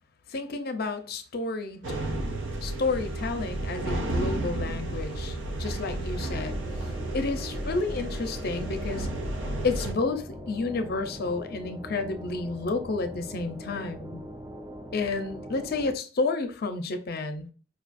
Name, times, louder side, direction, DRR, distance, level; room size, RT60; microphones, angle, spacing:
voice 1, 0.3-2.0 2.6-6.6 7.1-9.1 9.6-14.2 14.9-17.5, left 3 dB, 55° left, 0.6 m, -31 dB
sound 1, 1.8-9.9, right 1 dB, 85° right, 0.6 m, -32 dB
sound 2, 6.4-15.9, equal, 15° right, 0.4 m, -42 dB
5.0 x 2.3 x 2.5 m
head